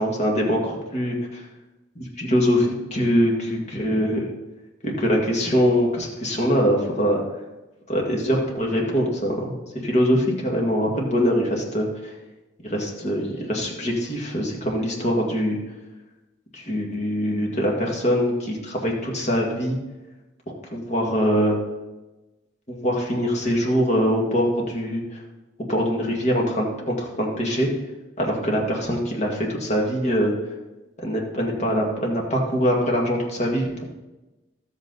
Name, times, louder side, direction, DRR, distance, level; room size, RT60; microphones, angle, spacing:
voice 1, 0.0-1.4 2.0-4.2 4.8-7.2 7.9-12.1 12.6-15.6 16.5-19.8 20.7-21.6 22.7-25.2 25.6-27.7 28.2-30.3 31.0-33.8, equal, 35° left, -1 dB, 1.9 m, -23 dB
12.5 x 8.0 x 4.0 m, 1.1 s
head